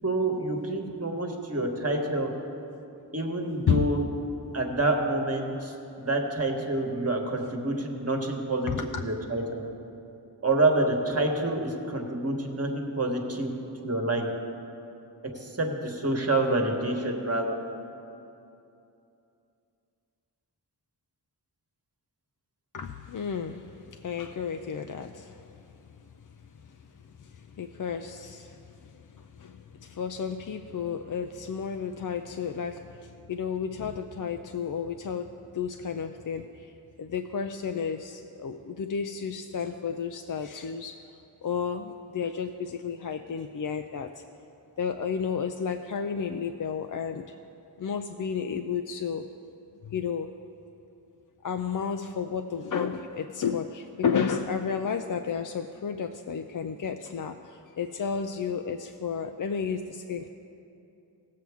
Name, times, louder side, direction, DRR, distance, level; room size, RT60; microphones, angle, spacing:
voice 1, 0.0-2.3 3.1-4.0 4.5-8.7 9.0-9.6 10.4-13.5 13.8-14.3 15.4-17.6, right 2 dB, 35° right, 2 dB, 1.3 m, -27 dB
voice 2, 8.6-9.0 22.7-25.7 26.7-36.7 37.0-41.0 41.4-44.2 44.8-47.4 47.8-49.2 49.8-50.3 51.4-60.3, left 6 dB, 50° left, 5 dB, 0.5 m, -32 dB
17.5 x 7.6 x 3.5 m, 2.7 s
wide cardioid pair, 65°, 41 cm